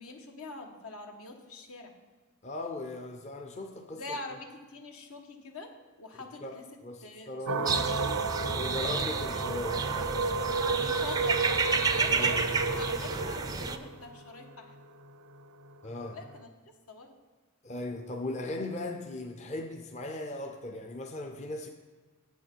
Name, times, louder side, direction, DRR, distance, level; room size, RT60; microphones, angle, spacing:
voice 1, 0.0-1.9 3.9-5.7 6.0-6.6 7.0-8.1 8.7-9.0 10.6-14.7 16.1-16.5 16.9-17.1, left 3 dB, 75° left, 3 dB, 1.2 m, -44 dB
voice 2, 2.4-4.2 6.1-6.6 6.8-7.7 8.5-10.4 12.1-12.4 15.8-16.2 17.6-21.7, left 2 dB, 30° left, 3 dB, 0.6 m, -38 dB
sound 1, 7.5-16.4, right 4 dB, 90° right, 0.5 m, -33 dB
sound 2, 7.7-13.8, right 4 dB, 15° right, 0.4 m, -31 dB
9.2 x 7.8 x 4.5 m, 1.4 s
head